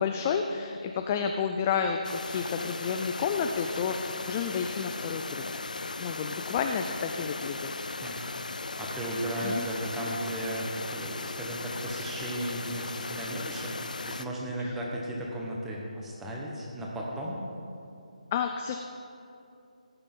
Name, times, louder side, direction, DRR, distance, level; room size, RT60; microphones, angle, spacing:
voice 1, 0.0-5.4 6.0-7.7 9.4-9.7 14.6-14.7 18.3-18.8, left 6 dB, 15° left, 5 dB, 0.3 m, -30 dB
sound 1, 2.0-14.3, left 3 dB, 85° left, 0.7 m, -37 dB
voice 2, 8.8-13.7 14.0-17.4, right 1 dB, 5° right, -3 dB, 1.1 m, -35 dB
18.0 x 6.8 x 5.4 m, 2.6 s
hypercardioid pair, 170°, 4 cm